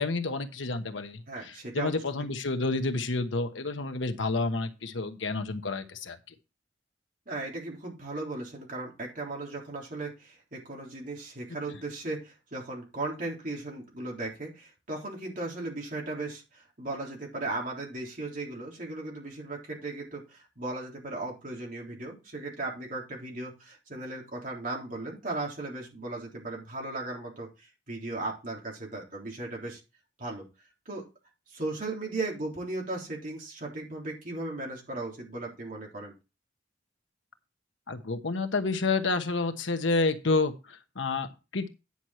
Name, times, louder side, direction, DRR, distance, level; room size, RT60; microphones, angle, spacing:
voice 1, 0.0-6.2 37.9-41.7, left 3 dB, 80° left, 8 dB, 1.1 m, -29 dB
voice 2, 1.3-2.0 7.3-29.8 30.2-30.5 30.9-31.1 31.5-36.1, right 2 dB, 45° right, -1 dB, 3.7 m, -37 dB
9.9 x 6.4 x 4.3 m, 0.28 s
head